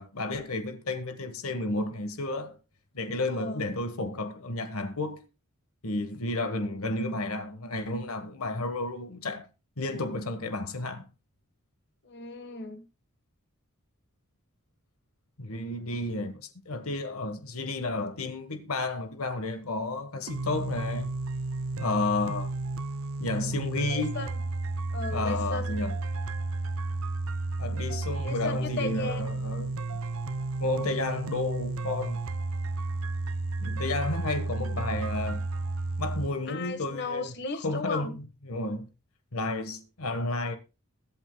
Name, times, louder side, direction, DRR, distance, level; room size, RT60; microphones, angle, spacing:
voice 1, 0.0-2.6 2.9-5.3 5.8-9.5 9.8-11.1 15.4-21.2 21.8-22.5 23.2-24.2 25.1-25.9 27.6-29.7 30.6-32.2 33.6-35.5 36.0-37.3 37.6-38.9 39.3-40.6, left 2 dB, 80° left, 1.4 m, -32 dB
voice 2, 3.3-3.6 12.0-12.8 23.9-24.3 24.9-25.8 28.2-29.3 36.5-38.2, left 3 dB, 50° left, 1.4 m, -36 dB
sound 1, 20.3-36.3, right 3 dB, 70° right, 0.7 m, -32 dB
22.0 x 8.2 x 2.3 m
head